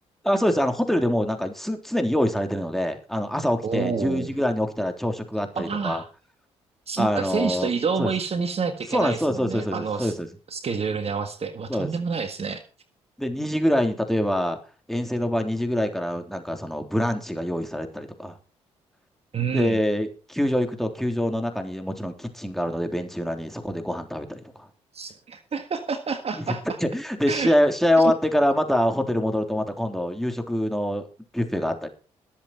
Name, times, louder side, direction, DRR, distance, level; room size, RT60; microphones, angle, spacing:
voice 1, 0.2-6.0 7.0-7.7 8.0-8.1 8.9-10.3 11.7-11.9 13.2-14.6 14.9-18.3 19.5-24.7 26.8-31.1 31.3-31.9, equal, ahead, 5 dB, 3.5 m, -25 dB
voice 2, 3.6-4.3 5.5-6.1 6.9-10.1 10.5-12.6 19.3-19.8 24.9-26.8 27.3-27.5 28.0-28.1, right 5 dB, 45° right, 8 dB, 1.6 m, -28 dB
21.0 x 7.8 x 4.4 m, 0.35 s
hypercardioid pair, 50°, 14 cm